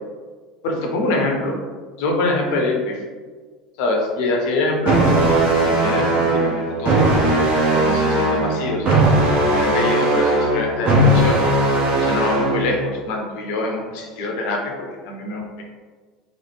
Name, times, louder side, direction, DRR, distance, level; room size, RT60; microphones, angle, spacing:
voice 1, 0.6-1.5 2.0-3.0 3.8-6.1 6.4-7.0 7.7-8.9 9.4-11.4 12.0-15.6, left 2 dB, 60° left, 1 dB, 0.6 m, -24 dB
sound 1, 4.8-12.8, right 1 dB, 40° right, 0.7 m, -18 dB
3.0 x 2.0 x 3.2 m, 1.5 s
figure-of-eight pair, 75°, 3 cm